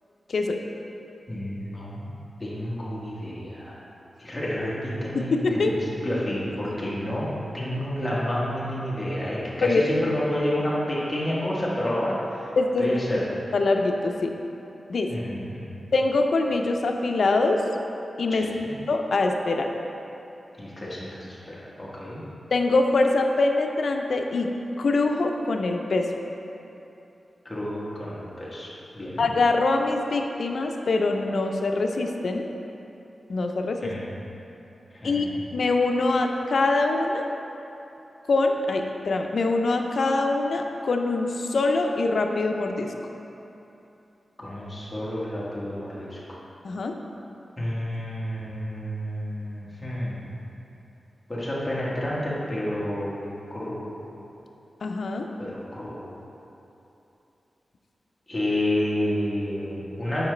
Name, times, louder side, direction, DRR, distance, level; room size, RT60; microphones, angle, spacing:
voice 1, 1.3-2.1 2.4-3.8 4.2-7.3 7.5-12.2 12.8-13.2 15.1-15.7 18.3-18.7 20.6-22.2 27.4-28.7 28.9-29.2 33.8-34.0 34.9-35.3 44.4-46.4 47.6-50.3 51.3-53.2 53.5-53.8 55.4-56.1 58.3-60.3, left 1 dB, 15° left, -7 dB, 1.2 m, -30 dB
voice 2, 5.1-5.7 9.6-9.8 12.6-12.9 13.5-14.4 14.9-15.1 15.9-17.6 18.2-18.5 18.9-19.7 22.5-24.5 24.8-26.0 29.2-32.5 33.3-33.9 35.0-37.2 38.3-42.9 46.6-46.9 54.8-55.3, left 3 dB, 65° left, 3 dB, 0.4 m, -24 dB
7.0 x 5.0 x 3.2 m, 2.9 s
wide cardioid pair, 135°, 0 cm